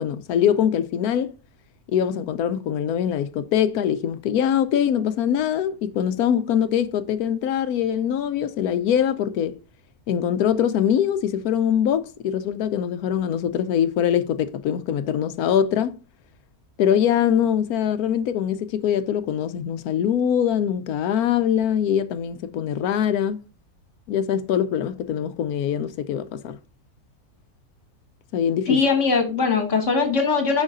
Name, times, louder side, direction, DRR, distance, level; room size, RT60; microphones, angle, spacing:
voice 1, 0.0-1.3 1.9-9.6 10.1-16.0 16.8-23.4 24.1-26.6 28.3-28.8, left 9 dB, 90° left, 1.1 m, -23 dB
voice 2, 28.7-30.6, left 4 dB, 55° left, 2.0 m, -21 dB
6.4 x 5.7 x 3.7 m
omnidirectional pair, 1.5 m